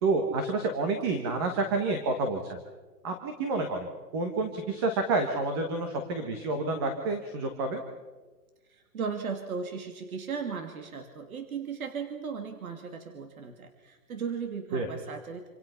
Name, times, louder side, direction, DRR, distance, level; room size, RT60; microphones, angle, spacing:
voice 1, 0.0-2.6 3.0-3.9 4.1-7.8 14.7-14.9, right 3 dB, 15° right, 5 dB, 1.4 m, -29 dB
voice 2, 8.7-15.5, right 6 dB, 60° right, 6 dB, 2.7 m, -36 dB
28.0 x 27.0 x 5.8 m, 1.3 s
hypercardioid pair, 175°, 47 cm